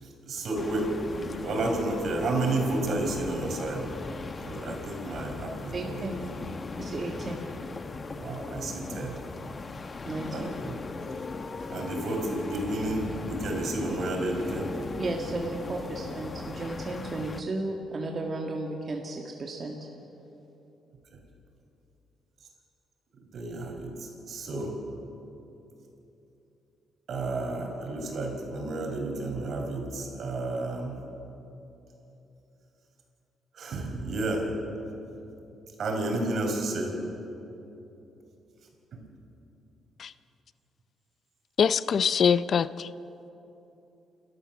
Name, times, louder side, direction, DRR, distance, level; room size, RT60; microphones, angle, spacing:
voice 1, 0.0-3.9 4.5-6.0 8.2-9.2 10.3-10.8 11.7-14.8 23.3-24.8 27.1-31.0 33.5-34.5 35.8-36.9 38.9-39.0, right 2 dB, 60° right, 2 dB, 4.9 m, -31 dB
sound 1, 0.6-17.4, left 4 dB, 35° left, 0.9 m, -38 dB
voice 2, 5.7-6.2 6.8-7.4 10.0-10.5 15.0-19.8, right 2 dB, 40° right, 1 dB, 1.9 m, -34 dB
voice 3, 41.6-42.9, left 7 dB, 55° left, 16 dB, 0.5 m, -23 dB
29.0 x 13.0 x 7.2 m, 3.0 s
cardioid pair, 90°, 0 cm